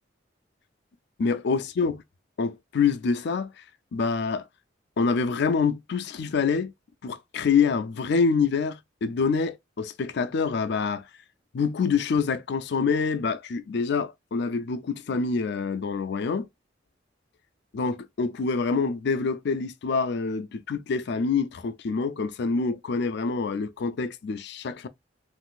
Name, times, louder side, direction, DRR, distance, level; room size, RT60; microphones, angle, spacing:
voice 1, 1.2-2.0 2.4-3.6 3.9-4.5 5.0-6.7 7.0-11.1 11.5-16.5 17.7-24.9, left 5 dB, 65° left, 0.4 m, -26 dB
3.7 x 2.5 x 2.3 m
head